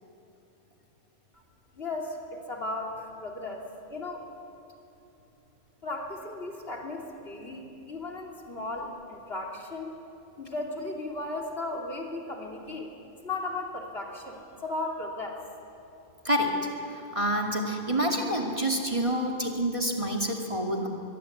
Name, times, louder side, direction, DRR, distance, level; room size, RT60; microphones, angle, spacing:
voice 1, 1.7-4.3 5.8-10.0 10.4-12.9 13.2-15.4, left 2 dB, 55° left, 0 dB, 3.2 m, -36 dB
voice 2, 16.2-16.6 16.9-20.9, equal, 25° right, 1 dB, 2.4 m, -27 dB
24.0 x 22.5 x 8.6 m, 2.8 s
omnidirectional pair, 1.2 m